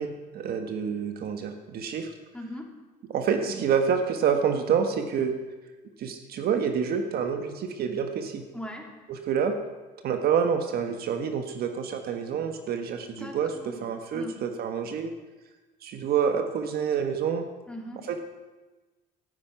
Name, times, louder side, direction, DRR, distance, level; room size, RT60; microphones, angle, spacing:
voice 1, 0.0-2.1 3.1-5.3 6.0-8.4 9.1-9.6 10.0-15.1 15.8-17.4 18.1-18.2, right 7 dB, 65° right, 6 dB, 1.5 m, -27 dB
voice 2, 2.3-2.7 8.5-8.9 13.1-13.8 14.1-14.4 17.7-18.0, equal, 5° left, 0 dB, 3.3 m, -39 dB
14.0 x 9.7 x 9.5 m, 1.2 s
cardioid pair, 110°, 17 cm